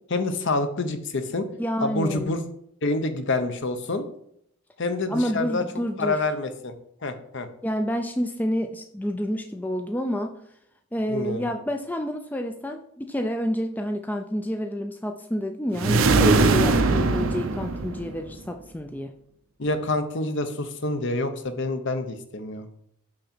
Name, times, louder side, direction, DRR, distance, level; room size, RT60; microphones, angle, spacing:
voice 1, 0.1-1.5 1.8-2.4 2.8-4.0 4.8-5.6 6.0-6.7 7.0-7.5 11.1-11.5 19.6-22.7, left 2 dB, 55° left, 9 dB, 0.8 m, -27 dB
voice 2, 1.6-2.3 5.1-6.2 7.6-10.3 10.9-19.1, equal, 10° left, 5 dB, 0.4 m, -28 dB
sound 1, 15.8-18.4, right 3 dB, 65° right, 0.6 m, -21 dB
6.4 x 5.7 x 4.3 m, 0.72 s
head